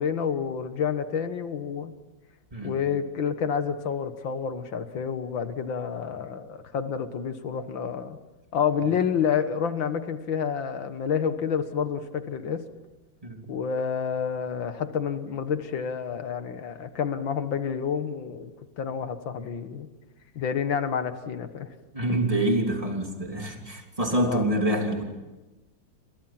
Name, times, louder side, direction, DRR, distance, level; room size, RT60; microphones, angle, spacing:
voice 1, 0.0-1.9 2.6-8.2 8.5-12.7 13.5-19.9 20.4-21.7 24.3-24.4, left 7 dB, 75° left, 9 dB, 2.3 m, -29 dB
voice 2, 21.9-25.0, right 1 dB, 15° right, 2 dB, 3.2 m, -26 dB
29.5 x 25.5 x 6.0 m, 1.1 s
omnidirectional pair, 2.1 m